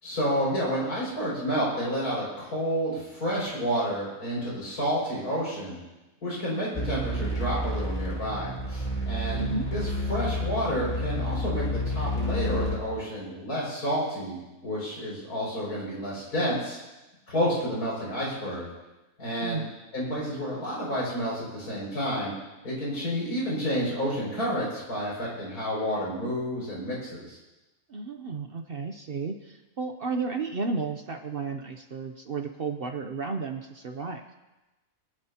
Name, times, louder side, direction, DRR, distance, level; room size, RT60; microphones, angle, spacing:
voice 1, 0.0-5.8 6.2-9.4 9.7-9.8 10.1-14.4 14.6-16.8 17.3-18.7 19.2-19.6 19.9-22.3 22.6-27.4, equal, 85° left, -6 dB, 6.6 m, -30 dB
sound 1, 6.7-12.8, equal, 30° left, 2.2 m, -30 dB
voice 2, 9.3-9.7 19.4-19.7 27.9-34.2, right 4 dB, 50° right, 6 dB, 0.8 m, -33 dB
23.0 x 11.5 x 2.9 m, 1.1 s
omnidirectional pair, 1.6 m